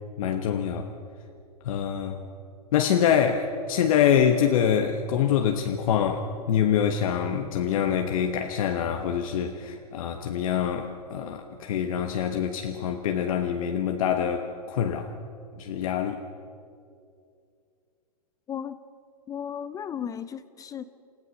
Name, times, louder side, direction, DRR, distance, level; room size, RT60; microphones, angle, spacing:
voice 1, 0.2-0.9 1.6-2.2 2.7-15.1 15.6-16.2, left 8 dB, 60° left, 5 dB, 1.3 m, -25 dB
voice 2, 18.5-18.8 19.3-20.8, left 8 dB, 15° left, 14 dB, 0.5 m, -35 dB
28.5 x 15.5 x 6.3 m, 2.4 s
hypercardioid pair, 125°, 20 cm